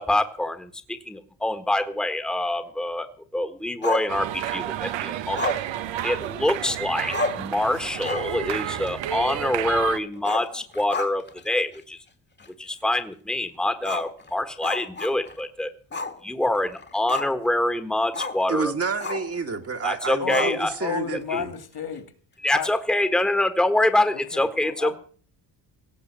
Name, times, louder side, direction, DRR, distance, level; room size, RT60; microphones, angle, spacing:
voice 1, 0.0-5.5 6.0-12.0 12.6-15.7 16.2-18.7 19.8-20.7 21.3-21.4 22.4-25.0, left 1 dB, ahead, 8 dB, 1.4 m, -25 dB
Growling, 3.8-4.6 5.3-6.6 6.9-7.0 7.1-7.5 7.9-8.4 8.7-8.8 10.2-11.4 11.7-11.8 12.4-12.5 13.8-15.4 15.9-16.2 16.5-17.5 18.1-18.4 19.0-19.4 20.3-20.9, left 3 dB, 25° left, 1.5 m, -32 dB
sound 1, 4.1-10.0, right 12 dB, 85° right, 1.0 m, -30 dB
voice 2, 18.5-21.5, right 5 dB, 35° right, 6 dB, 1.6 m, -29 dB
voice 3, 20.2-22.1 22.5-22.7 24.1-25.0, left 7 dB, 55° left, 10 dB, 2.6 m, -32 dB
17.5 x 6.8 x 8.0 m, 0.43 s
cardioid pair, 90°, 43 cm